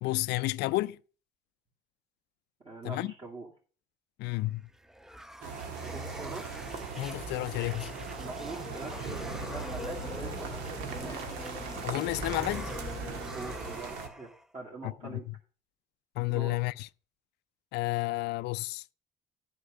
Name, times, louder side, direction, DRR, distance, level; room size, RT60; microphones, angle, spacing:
voice 1, 0.0-1.0 2.8-3.1 4.2-4.6 7.0-7.9 11.8-12.7 14.8-15.4 16.2-16.9 17.7-18.8, left 20 dB, 80° left, 0.4 m, -31 dB
voice 2, 2.6-3.5 5.8-6.5 8.2-10.8 13.1-15.3 16.3-16.6, right 2 dB, 35° right, 2.4 m, -44 dB
sound 1, 4.5-14.5, equal, 5° right, 0.4 m, -46 dB
sound 2, 5.4-14.1, right 5 dB, 90° right, 1.5 m, -39 dB
sound 3, 6.6-13.8, left 4 dB, 20° left, 0.8 m, -44 dB
10.0 x 5.0 x 6.6 m
cardioid pair, 110°, 17 cm